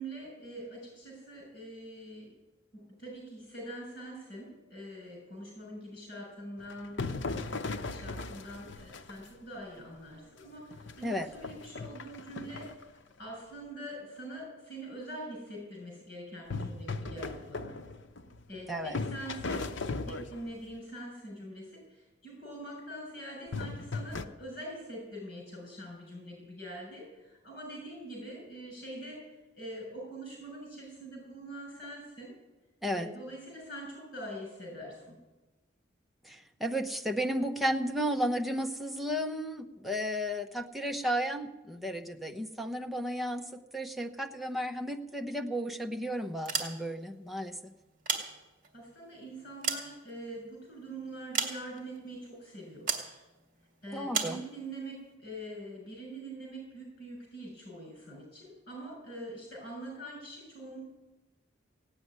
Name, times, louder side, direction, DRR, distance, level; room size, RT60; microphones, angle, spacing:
voice 1, 0.0-2.4 2.7-17.7 18.5-19.7 20.1-32.3 32.9-35.2 48.7-53.2 53.8-60.8, right 1 dB, 50° left, -1 dB, 6.3 m, -44 dB
sound 1, 6.6-9.4 10.0-10.1 10.6-12.8 16.5-18.6 18.9-20.7 23.5-24.3, left 3 dB, 70° left, 0.8 m, -38 dB
voice 2, 18.7-19.0 32.8-33.1 36.2-47.6 53.9-54.4, equal, ahead, 3 dB, 0.9 m, -33 dB
sound 2, 46.3-47.1 47.8-48.8 49.3-50.6 51.3-52.0 52.9-53.1 54.1-54.4, right 5 dB, 45° right, 2.5 m, -34 dB
17.0 x 8.8 x 9.6 m, 1.1 s
head